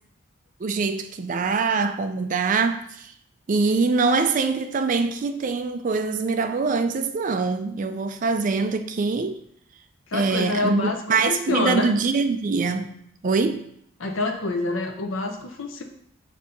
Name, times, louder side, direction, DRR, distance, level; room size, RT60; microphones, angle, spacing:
voice 1, 0.6-3.1 3.5-9.4 10.1-12.9 13.2-13.6, right 4 dB, 40° right, 9 dB, 0.3 m, -23 dB
voice 2, 10.1-11.9 14.0-15.8, left 3 dB, 60° left, 3 dB, 0.6 m, -27 dB
6.7 x 2.7 x 5.1 m, 0.70 s
head